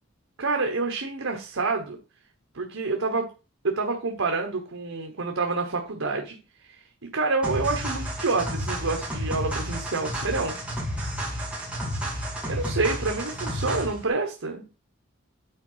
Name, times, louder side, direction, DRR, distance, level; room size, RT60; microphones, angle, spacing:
voice 1, 0.4-2.0 2.5-3.3 3.6-6.4 6.6-6.8 7.1-10.6 12.4-14.6, right 3 dB, 75° right, 4 dB, 1.1 m, -28 dB
sound 1, 7.4-14.0, equal, 5° right, 2.2 m, -31 dB
9.4 x 3.9 x 5.6 m, 0.32 s
head